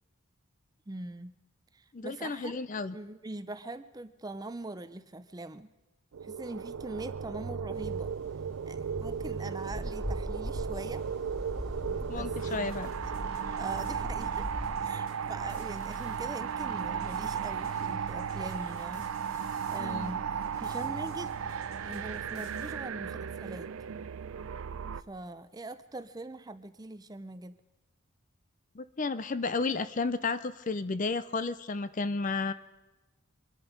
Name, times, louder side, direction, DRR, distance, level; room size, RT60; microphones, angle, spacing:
voice 1, 0.9-1.4 1.7-2.6 2.9-5.7 6.2-8.1 8.7-11.0 11.8-12.7 13.6-14.5 14.8-19.4 19.7-20.2 20.6-23.7 25.0-27.6, right 2 dB, 20° right, 12 dB, 0.5 m, -42 dB
voice 2, 1.9-3.0 12.1-12.9 19.8-20.1 28.7-32.5, left 4 dB, 35° left, 14 dB, 0.5 m, -32 dB
sound 1, 6.1-25.0, right 7 dB, 75° right, 0.5 m, -35 dB
sound 2, 7.7-14.7, equal, 10° left, 3.7 m, -40 dB
sound 3, 12.4-22.7, left 2 dB, 70° left, 2.4 m, -52 dB
24.5 x 10.5 x 5.2 m, 1.1 s
head